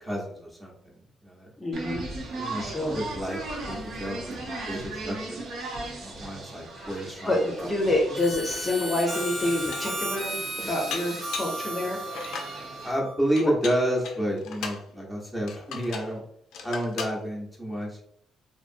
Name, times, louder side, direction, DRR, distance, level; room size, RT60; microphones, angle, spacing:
voice 1, 0.0-1.5 2.3-2.6 2.9-3.4 3.7-5.4 5.7-7.7 12.8-16.2 16.6-18.0, equal, 10° right, -3 dB, 0.8 m, -30 dB
voice 2, 1.6-2.0 2.6-3.0 6.7-12.1 13.4-13.5, left 1 dB, 25° left, -1 dB, 0.6 m, -28 dB
sound 1, 1.7-12.9, right 2 dB, 70° right, 0.6 m, -38 dB
Harmonica, 8.1-13.3, right 1 dB, 45° right, 0.9 m, -35 dB
Dishes pots and pans, 8.8-8.9 9.4-10.0 10.9-11.6 12.1-12.6 13.4-14.9 15.5-16.1 16.5-17.2, left 5 dB, 80° left, 0.4 m, -37 dB
2.7 x 2.4 x 2.5 m, 0.69 s
cardioid pair, 90°, 0 cm